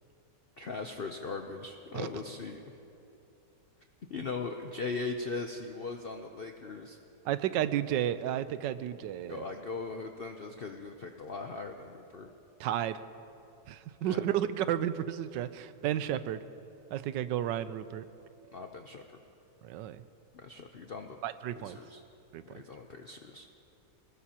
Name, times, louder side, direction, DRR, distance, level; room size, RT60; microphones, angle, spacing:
voice 1, 0.6-2.6 4.1-7.0 9.3-12.3 14.0-14.3 18.5-19.2 20.3-21.2 21.6-22.0 22.4-23.5, left 4 dB, 70° left, 4 dB, 0.5 m, -39 dB
voice 2, 7.2-9.4 12.6-13.0 13.7-16.4 16.9-18.1 19.6-20.0 21.2-21.8 22.3-22.6, right 11 dB, 85° right, 13 dB, 1.3 m, -32 dB
24.5 x 19.5 x 2.9 m, 2.8 s
omnidirectional pair, 1.9 m